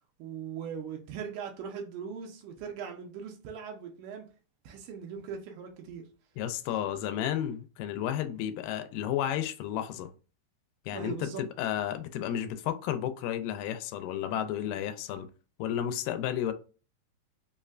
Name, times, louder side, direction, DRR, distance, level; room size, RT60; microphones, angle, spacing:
voice 1, 0.2-4.3 4.6-6.1 10.9-11.4 14.6-14.7, right 7 dB, 80° right, 2.2 m, -40 dB
voice 2, 6.4-10.1 10.9-15.3 15.6-16.5, left 10 dB, 85° left, 2.1 m, -32 dB
5.3 x 2.1 x 2.4 m
omnidirectional pair, 3.8 m